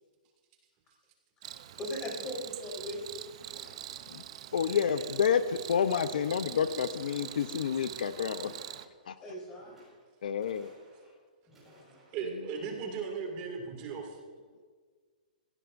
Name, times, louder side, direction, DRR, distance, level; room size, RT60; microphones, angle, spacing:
Cricket, 1.4-8.8, right 12 dB, 40° right, 0.6 m, -44 dB
voice 1, 1.7-3.0 9.2-9.7 11.5-12.0, left 1 dB, 15° left, -3 dB, 4.1 m, -39 dB
sound 1, 2.2-2.9 3.4-4.3 4.8-5.4 5.7-6.5 7.0-7.7 8.3-9.1 9.5-10.1 10.3-11.2 11.4-12.2, right 2 dB, 5° right, 6.0 m, -60 dB
voice 2, 4.5-8.5 9.1-9.2 10.2-10.7, left 7 dB, 70° left, 11 dB, 0.7 m, -29 dB
voice 3, 12.1-14.2, right 5 dB, 25° right, 2 dB, 2.3 m, -37 dB
26.0 x 16.0 x 2.6 m, 1.5 s
hypercardioid pair, 170°, 5 cm